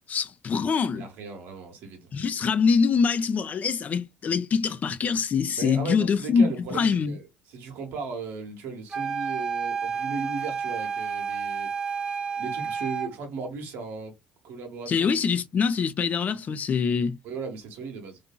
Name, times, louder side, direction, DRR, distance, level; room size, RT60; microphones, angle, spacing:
voice 1, 0.1-1.0 2.1-7.2 14.9-17.2, left 5 dB, 45° left, 0.4 m, -24 dB
voice 2, 0.9-2.1 5.6-11.9 12.4-14.1 14.4-15.2 17.2-18.2, right 4 dB, 70° right, 0.9 m, -36 dB
sound 1, 8.9-13.2, right 6 dB, 20° right, 0.8 m, -30 dB
2.6 x 2.6 x 2.3 m
hypercardioid pair, 55°, 4 cm